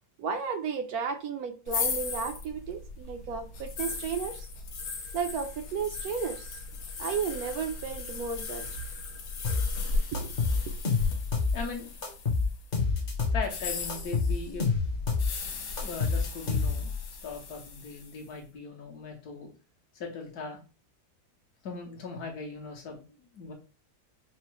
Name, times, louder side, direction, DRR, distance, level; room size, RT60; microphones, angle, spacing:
voice 1, 0.2-4.5 5.1-6.6 7.0-8.7 10.1-10.3 10.7-10.8, right 6 dB, 70° right, 1.0 m, -33 dB
sound 1, 1.7-12.6 13.4-18.2, left 4 dB, 90° left, 1.4 m, -37 dB
sound 2, 9.4-9.7 10.1-11.6 12.0-13.4 13.9-15.3 15.8-17.0, left 4 dB, 40° left, 0.9 m, -27 dB
voice 2, 11.5-11.9 13.3-14.8 15.8-16.9 17.2-19.5 19.9-20.6 21.6-23.5, left 4 dB, 70° left, 1.4 m, -39 dB
5.5 x 2.0 x 3.0 m
omnidirectional pair, 1.8 m